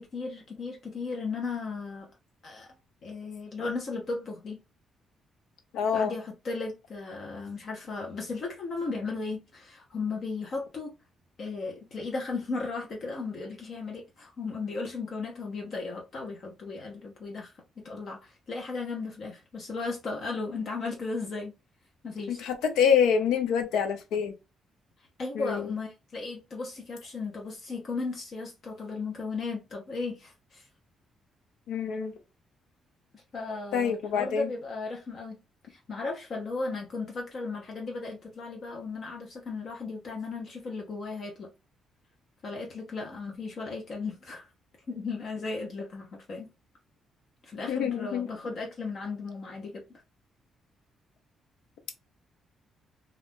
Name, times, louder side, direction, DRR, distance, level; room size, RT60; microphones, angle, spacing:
voice 1, 0.0-2.1 2.4-2.7 3.0-4.6 5.9-10.9 11.4-21.5 22.0-22.4 25.2-30.7 33.1-35.4 35.7-41.5 42.4-44.5 44.9-46.5 47.4-49.8, left 3 dB, 55° left, 0.8 m, -36 dB
voice 2, 5.7-6.1 22.3-24.3 25.3-25.7 31.7-32.1 33.7-34.5 47.7-48.3, left 7 dB, 90° left, 0.6 m, -26 dB
2.4 x 2.4 x 3.5 m
cardioid pair, 90°, 0 cm